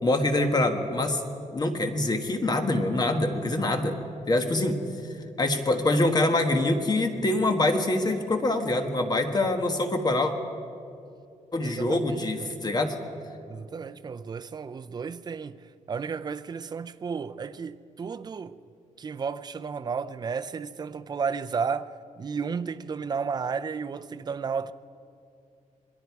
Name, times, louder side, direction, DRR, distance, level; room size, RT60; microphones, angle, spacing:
voice 1, 0.0-1.2 1.5-4.0 4.3-4.8 5.4-10.3 11.5-12.9, left 2 dB, 30° left, 1.4 m, -25 dB
voice 2, 11.6-12.5 13.5-15.6 15.9-18.6 19.0-21.9 22.2-24.7, right 5 dB, 30° right, 0.5 m, -33 dB
27.5 x 21.5 x 4.7 m
wide cardioid pair, 145°, 14 cm